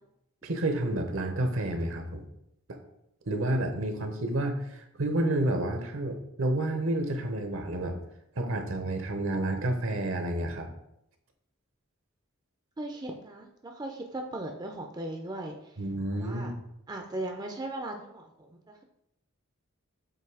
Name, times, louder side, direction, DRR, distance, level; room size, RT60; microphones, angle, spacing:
voice 1, 0.4-2.3 2.7-2.8 3.3-8.0 8.4-10.7 15.8-16.5, right 1 dB, 65° right, 5 dB, 0.9 m, -30 dB
voice 2, 12.8-15.7 16.1-16.5 16.9-18.8, right 1 dB, 20° right, 3 dB, 0.5 m, -38 dB
7.7 x 2.7 x 4.8 m, 0.81 s
head